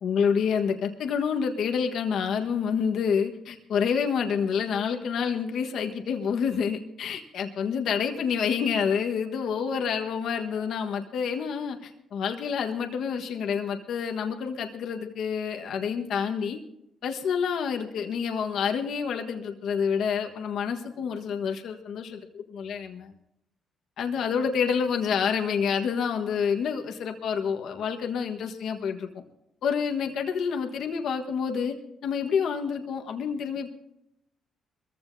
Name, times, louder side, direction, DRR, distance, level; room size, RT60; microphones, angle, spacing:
voice 1, 0.0-16.6 17.0-23.1 24.0-29.1 29.6-31.7 32.0-33.7, left 6 dB, 70° left, 4 dB, 1.4 m, -28 dB
22.5 x 15.0 x 2.7 m, 0.82 s
cardioid pair, 90°, 0 cm